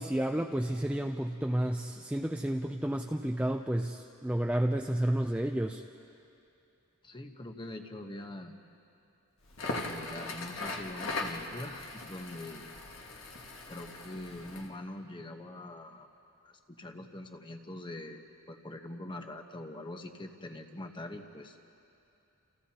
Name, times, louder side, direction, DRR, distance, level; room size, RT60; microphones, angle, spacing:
voice 1, 0.0-5.8, right 1 dB, 5° right, 2 dB, 0.4 m, -31 dB
voice 2, 7.0-8.5 9.7-12.6 13.7-21.6, left 1 dB, 20° left, 4 dB, 1.1 m, -43 dB
Crackle, 9.5-14.7, left 3 dB, 60° left, 1.7 m, -39 dB
30.0 x 30.0 x 2.9 m, 2.7 s
head